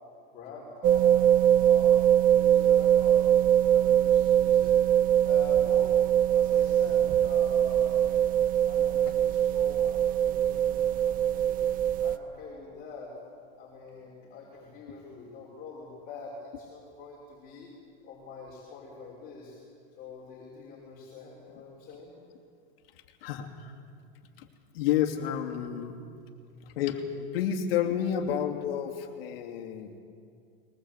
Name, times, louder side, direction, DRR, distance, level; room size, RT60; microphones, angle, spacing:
voice 1, 0.3-2.0 2.3-4.8 5.2-6.0 6.3-8.2 8.6-13.1 13.6-17.7 18.0-19.6 20.0-22.1, left 4 dB, 30° left, -3 dB, 5.3 m, -45 dB
sound 1, 0.8-12.2, right 10 dB, 30° right, 0.7 m, -22 dB
voice 2, 23.2-23.7 24.4-24.5 24.7-25.9 26.8-29.9, left 9 dB, 75° left, 4 dB, 2.8 m, -30 dB
22.0 x 20.5 x 8.2 m, 2.3 s
supercardioid pair, 145°, 30 cm